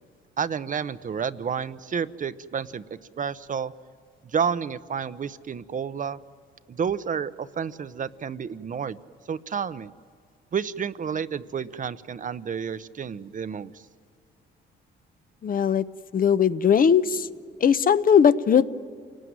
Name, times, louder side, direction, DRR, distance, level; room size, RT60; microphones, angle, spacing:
voice 1, 0.4-2.8 3.2-3.7 4.2-6.2 6.7-9.0 9.3-9.9 10.5-13.8, right 7 dB, 40° right, 14 dB, 0.8 m, -30 dB
voice 2, 15.4-15.8 16.1-17.3 17.6-18.7, left 7 dB, 45° left, 13 dB, 0.8 m, -19 dB
28.0 x 19.0 x 9.5 m, 2.1 s
cardioid pair, 90°, 20 cm